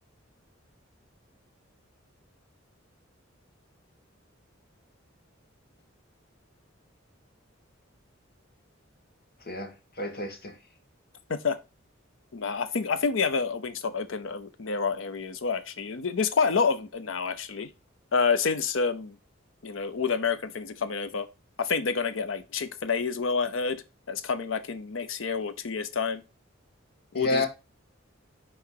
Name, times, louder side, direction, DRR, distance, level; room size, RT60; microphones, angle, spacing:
voice 1, 9.5-10.6 27.1-27.5, left 2 dB, 50° left, 1.4 m, -30 dB
voice 2, 12.3-17.7 18.1-19.2 19.6-21.3 21.6-26.2 27.1-27.5, left 5 dB, 70° left, 0.6 m, -28 dB
5.8 x 3.9 x 4.7 m
head